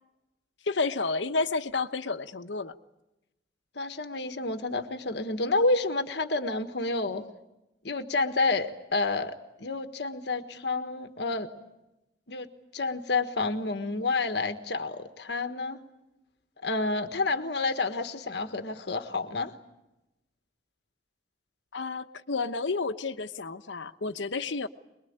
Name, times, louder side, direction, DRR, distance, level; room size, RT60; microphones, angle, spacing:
voice 1, 0.6-2.7 21.7-24.7, left 4 dB, 80° left, 1.1 m, -31 dB
voice 2, 3.7-7.3 7.8-11.5 12.3-12.5 12.7-15.8 16.6-19.5, left 3 dB, 65° left, 1.5 m, -29 dB
23.5 x 22.5 x 8.8 m
head